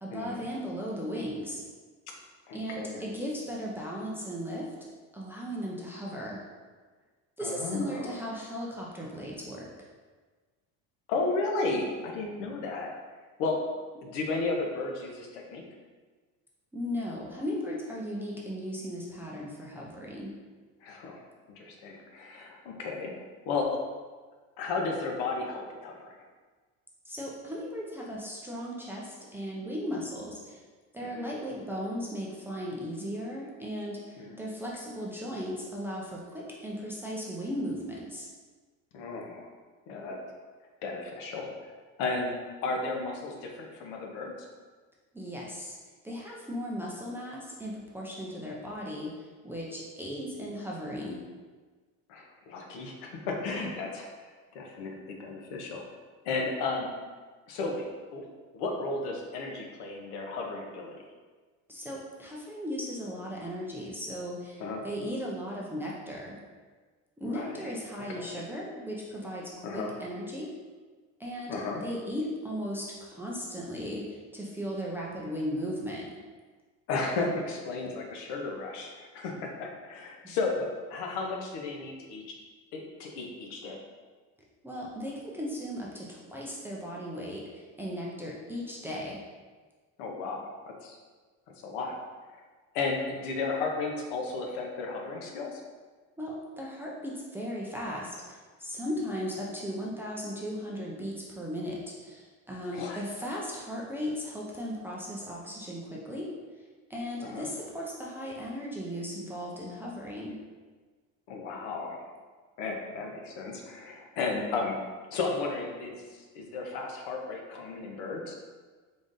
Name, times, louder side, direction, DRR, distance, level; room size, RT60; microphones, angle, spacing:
voice 1, 0.0-1.6 2.5-4.7 5.1-6.4 7.4-9.7 16.7-20.3 27.1-30.6 30.9-38.3 45.1-45.8 46.0-51.2 61.7-66.4 67.2-70.5 71.2-76.1 80.2-80.4 84.6-89.2 96.2-106.3 106.9-110.4, equal, 5° right, -4 dB, 0.3 m, -37 dB
voice 2, 2.5-3.0 7.4-8.1 11.1-12.9 13.4-13.6 14.0-15.6 20.8-21.2 21.5-23.1 23.5-23.7 24.6-26.2 31.0-31.3 34.2-34.4 38.9-39.5 39.9-40.2 40.8-41.5 42.0-42.4 42.6-44.3 52.1-54.1 54.5-55.8 56.2-56.9 57.5-58.2 58.5-60.9 64.6-64.8 67.2-68.2 69.6-69.9 71.5-71.8 76.9-82.4 82.7-83.8 90.0-91.0 91.6-92.0 92.3-92.4 92.7-95.6 102.7-103.0 107.2-107.5 111.3-112.1 112.6-114.8 115.1-116.0 116.3-118.4, left 3 dB, 85° left, 1 dB, 0.8 m, -34 dB
3.9 x 3.6 x 2.5 m, 1.4 s
cardioid pair, 140°, 36 cm